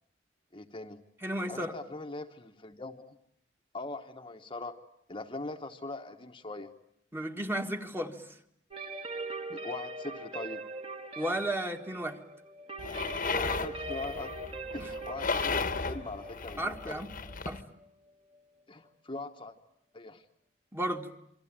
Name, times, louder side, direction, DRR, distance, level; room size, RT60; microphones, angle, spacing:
voice 1, 0.5-1.0 1.5-3.2 3.7-4.8 5.1-6.7 9.5-10.6 13.4-14.3 14.7-17.0 18.7-19.5 19.9-20.2, left 2 dB, 25° left, 5 dB, 1.1 m, -41 dB
voice 2, 1.2-1.8 7.1-8.4 11.2-12.2 14.8-14.9 16.6-17.1 17.5-17.6 20.7-21.1, right 1 dB, 15° right, 5 dB, 1.7 m, -34 dB
sound 1, 8.7-18.4, right 2 dB, 30° right, 1.9 m, -41 dB
sound 2, 12.8-17.6, left 4 dB, 45° left, 1.2 m, -35 dB
28.0 x 24.0 x 8.8 m, 0.75 s
head